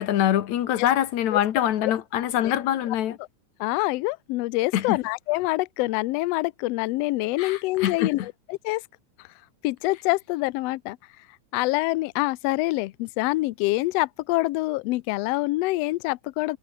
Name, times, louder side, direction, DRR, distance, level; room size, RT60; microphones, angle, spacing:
voice 1, 0.0-3.2 4.7-5.0 7.4-8.1, left 11 dB, 70° left, 2.6 m, -24 dB
voice 2, 3.6-8.8 9.2-9.3 9.6-11.3 11.5-16.6, left 20 dB, 90° left, 1.4 m, -26 dB
omnidirectional pair, 3.5 m